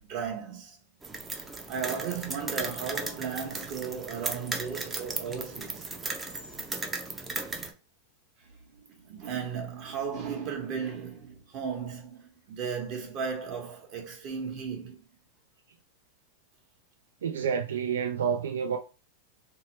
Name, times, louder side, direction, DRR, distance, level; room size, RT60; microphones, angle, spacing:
voice 1, 0.1-0.8 1.7-5.9 8.7-15.0, right 6 dB, 50° right, 1.1 m, -35 dB
sound 1, 1.0-7.7, right 3 dB, 20° right, 0.5 m, -36 dB
voice 2, 17.2-18.8, right 7 dB, 90° right, 0.3 m, -29 dB
2.8 x 2.0 x 3.1 m
hypercardioid pair, 120°, 0 cm